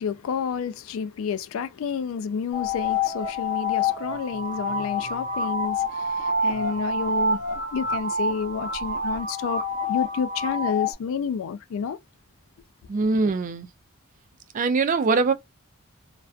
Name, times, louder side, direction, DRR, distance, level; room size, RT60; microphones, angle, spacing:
voice 1, 0.0-12.0, left 6 dB, 70° left, 0.3 m, -30 dB
sound 1, 2.5-10.9, left 2 dB, 35° left, 0.8 m, -27 dB
voice 2, 12.9-13.7 14.5-15.3, right 4 dB, 40° right, 0.3 m, -22 dB
2.4 x 2.2 x 2.4 m
head